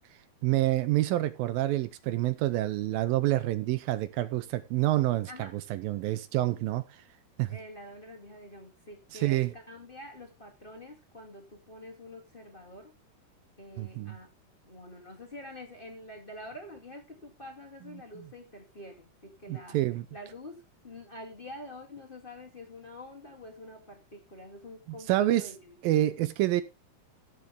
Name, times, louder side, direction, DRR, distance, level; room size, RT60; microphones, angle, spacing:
voice 1, 0.4-6.8 7.4-7.6 9.1-9.5 13.8-14.2 19.5-20.1 25.1-25.5 25.8-26.6, right 15 dB, 80° right, 2.2 m, -27 dB
voice 2, 7.5-12.9 13.6-14.3 14.6-19.8 20.1-25.7, left 1 dB, 25° left, 1.1 m, -46 dB
17.0 x 6.8 x 3.6 m
omnidirectional pair, 4.7 m